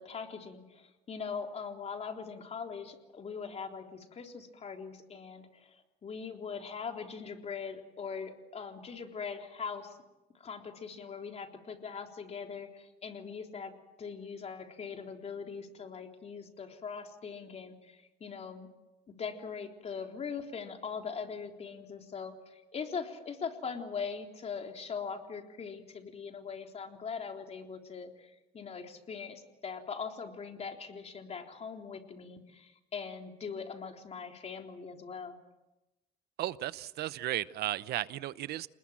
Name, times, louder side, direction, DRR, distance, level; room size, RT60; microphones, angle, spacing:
voice 1, 0.0-10.0 10.3-13.7 14.0-18.7 19.2-35.4, left 6 dB, 40° left, 3 dB, 3.7 m, -41 dB
voice 2, 36.4-38.7, right 14 dB, 70° right, 17 dB, 0.8 m, -35 dB
28.5 x 20.5 x 7.5 m, 1.0 s
cardioid pair, 110°, 17 cm